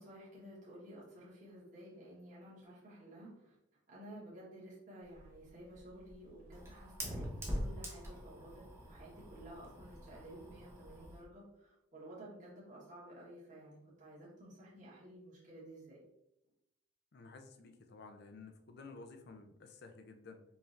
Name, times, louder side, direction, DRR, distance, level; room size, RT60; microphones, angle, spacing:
voice 1, 0.0-3.6 3.9-16.0, right 1 dB, 35° right, -7 dB, 1.3 m, -53 dB
Fire, 5.0-11.2, equal, 10° right, 0.5 m, -44 dB
voice 2, 17.1-20.4, left 3 dB, 50° left, 6 dB, 0.4 m, -53 dB
4.7 x 3.2 x 2.5 m, 0.84 s
head